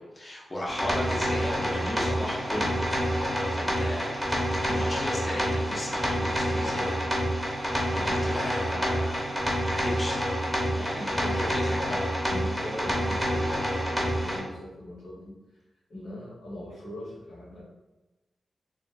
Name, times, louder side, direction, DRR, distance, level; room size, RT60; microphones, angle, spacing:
voice 1, 0.0-2.8 3.1-7.0 7.4-10.2 10.8-12.0, left 1 dB, 25° left, -4 dB, 0.6 m, -36 dB
sound 1, 0.7-14.4, equal, ahead, 0.9 m, -28 dB
voice 2, 10.7-11.7 12.4-15.3 15.9-17.6, left 1 dB, 80° left, -10 dB, 1.4 m, -40 dB
3.1 x 2.1 x 2.5 m, 1.1 s
cardioid pair, 75°, 0 cm